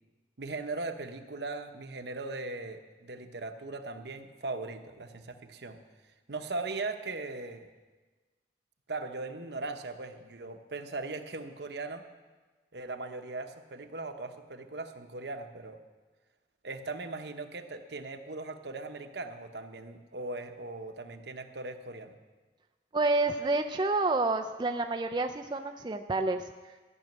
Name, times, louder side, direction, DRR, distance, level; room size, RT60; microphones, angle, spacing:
voice 1, 0.4-5.8 6.3-7.7 8.9-12.0 12.7-15.8 16.6-22.2, right 3 dB, 70° right, 7 dB, 0.9 m, -39 dB
voice 2, 22.9-26.7, right 2 dB, 25° right, 4 dB, 0.4 m, -29 dB
14.0 x 6.3 x 9.2 m, 1.3 s
head